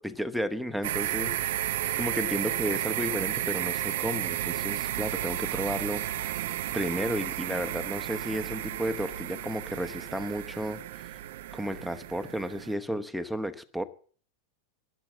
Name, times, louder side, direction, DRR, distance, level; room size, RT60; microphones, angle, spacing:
voice 1, 0.0-11.2 11.5-13.8, equal, ahead, 1.1 m, -33 dB
sound 1, 0.8-12.7, right 14 dB, 55° right, 0.7 m, -33 dB
12.0 x 11.0 x 7.3 m
figure-of-eight pair, 90°, 0 cm